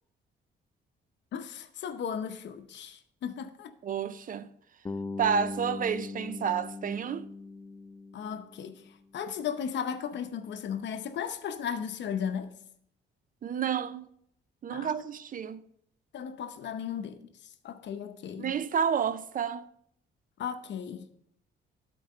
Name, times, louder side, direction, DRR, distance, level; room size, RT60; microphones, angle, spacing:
voice 1, 1.3-3.7 8.1-8.8 9.1-12.5 14.7-14.9 16.1-17.3 17.6-18.5 20.4-21.1, left 7 dB, 65° left, 0.8 m, -35 dB
voice 2, 3.8-4.5 5.2-7.3 13.4-14.1 14.6-15.6 18.4-19.6, right 7 dB, 45° right, 0.5 m, -30 dB
Bass guitar, 4.9-9.0, left 3 dB, 15° left, 0.5 m, -40 dB
11.5 x 4.6 x 4.2 m
cardioid pair, 90°, 20 cm